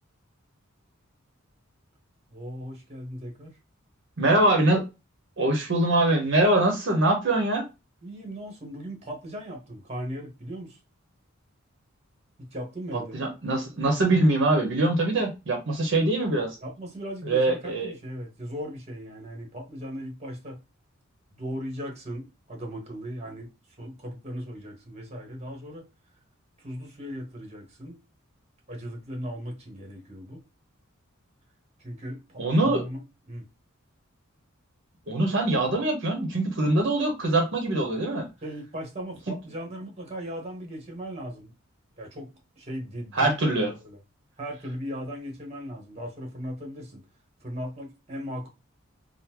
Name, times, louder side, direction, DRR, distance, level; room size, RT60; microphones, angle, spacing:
voice 1, 2.3-3.6 8.0-10.8 12.4-13.1 16.6-20.6 21.3-23.5 23.8-25.9 26.6-27.9 28.7-30.4 31.8-33.0 33.3-33.5 38.4-41.5 42.0-42.3 42.6-44.0 44.4-47.0 47.4-48.5, equal, 30° right, 1.1 m, -37 dB
voice 2, 4.2-4.8 5.4-7.6 12.9-16.6 17.3-17.9 32.4-32.8 35.1-38.3 43.1-43.7, right 2 dB, 60° right, 0.8 m, -23 dB
3.6 x 2.1 x 2.9 m
head